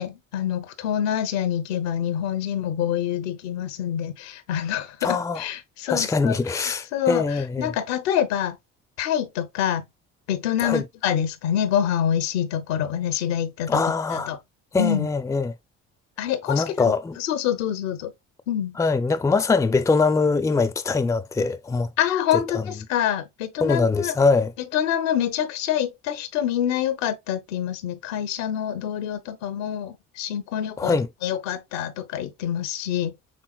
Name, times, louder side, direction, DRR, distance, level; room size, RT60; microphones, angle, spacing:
voice 1, 0.0-8.6 9.0-9.8 10.3-13.8 14.1-14.4 14.8-15.1 16.2-18.1 18.5-18.8 22.0-24.1 24.7-33.1, left 10 dB, 75° left, 0.9 m, -26 dB
voice 2, 5.0-5.4 5.9-7.7 10.6-10.8 13.7-14.3 14.7-15.5 16.5-17.2 18.8-21.9 22.5-22.7 23.6-24.5 30.8-31.1, left 4 dB, 10° left, 0.5 m, -22 dB
6.4 x 3.5 x 2.3 m
hypercardioid pair, 55°, 37 cm